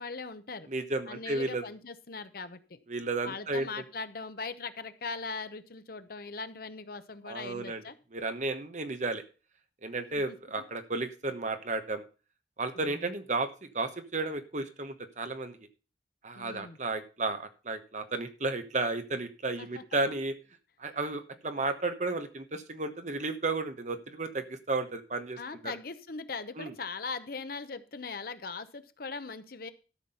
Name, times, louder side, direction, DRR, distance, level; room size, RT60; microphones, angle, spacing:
voice 1, 0.0-0.7 1.1-2.8 3.2-7.9 10.2-10.4 12.8-13.0 16.4-16.8 19.6-19.8 25.4-29.7, left 4 dB, 55° left, 11 dB, 0.9 m, -40 dB
voice 2, 0.7-1.7 2.9-3.8 7.3-7.8 8.1-9.2 9.8-12.0 12.6-15.6 16.2-20.3 20.8-25.8 26.6-26.7, right 3 dB, 40° right, 8 dB, 1.2 m, -33 dB
13.0 x 6.0 x 5.6 m, 0.33 s
head